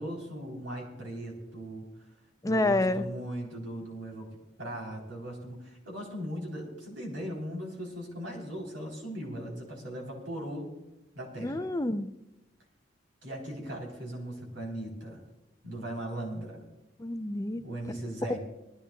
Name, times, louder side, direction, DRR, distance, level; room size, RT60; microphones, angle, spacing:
voice 1, 0.0-1.9 2.4-4.3 4.6-10.7 11.1-11.7 13.2-15.2 15.6-16.6 17.6-18.4, right 1 dB, 85° right, 0 dB, 3.8 m, -38 dB
voice 2, 2.4-3.1 11.4-12.2 17.0-17.6, left 2 dB, 20° left, 9 dB, 0.5 m, -28 dB
20.5 x 14.5 x 2.3 m, 0.94 s
head